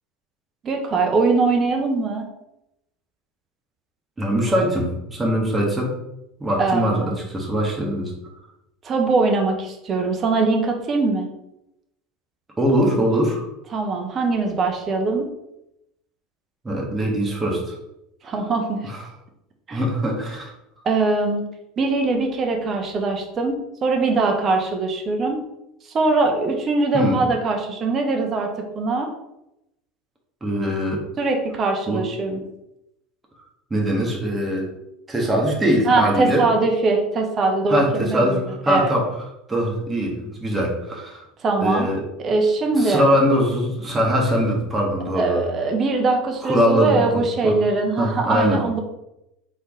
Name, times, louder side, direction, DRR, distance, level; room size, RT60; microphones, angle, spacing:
voice 1, 0.6-2.3 6.6-7.2 8.8-11.3 13.7-15.3 18.2-18.9 19.7-19.8 20.8-21.4 21.8-25.4 25.9-28.5 28.7-29.1 31.2-32.4 35.9-38.4 38.7-38.9 41.4-41.9 42.2-43.0 45.1-48.8, right 3 dB, 35° right, 3 dB, 1.1 m, -22 dB
voice 2, 4.2-6.0 6.4-8.1 12.6-13.4 16.6-17.8 18.9-19.0 19.7-20.5 26.9-27.2 30.4-31.0 31.9-32.1 33.7-34.7 35.1-36.5 37.7-39.1 39.5-41.2 41.6-42.0 42.8-45.4 46.4-47.0 47.4-47.5 48.0-48.6, equal, 15° right, -2 dB, 1.6 m, -22 dB
4.1 x 3.5 x 3.7 m, 0.86 s
hypercardioid pair, 80°, 0 cm